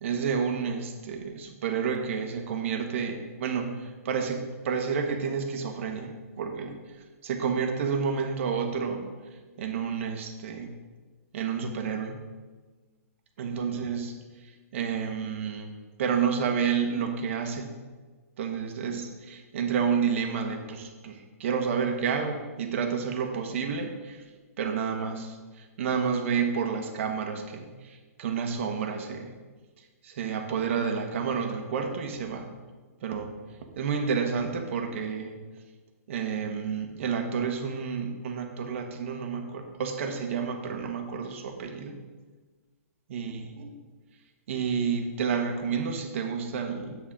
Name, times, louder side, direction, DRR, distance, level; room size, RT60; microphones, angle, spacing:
voice 1, 0.0-6.8 7.2-9.0 9.6-10.7 11.3-12.2 13.4-14.2 14.7-17.7 18.4-24.2 24.6-29.3 30.0-32.5 33.0-33.3 33.8-35.3 36.1-42.0 43.1-43.8 44.5-47.0, right 6 dB, 55° right, 5 dB, 1.4 m, -30 dB
8.8 x 8.7 x 3.8 m, 1.4 s
hypercardioid pair, 150°, 8 cm